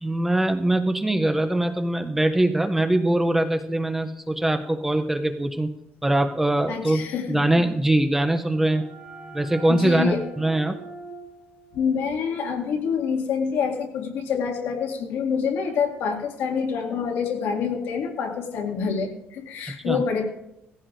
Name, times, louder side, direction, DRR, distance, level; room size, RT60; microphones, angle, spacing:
voice 1, 0.0-5.7 6.0-8.8 9.3-10.8 19.9-20.0, right 1 dB, 5° right, 6 dB, 0.5 m, -22 dB
voice 2, 6.7-7.5 9.7-10.2 11.7-20.2, left 6 dB, 75° left, 1 dB, 2.0 m, -27 dB
sound 1, 8.0-13.6, right 2 dB, 25° right, 2.7 m, -43 dB
19.0 x 15.5 x 2.6 m, 0.84 s
cardioid pair, 180°, 4 cm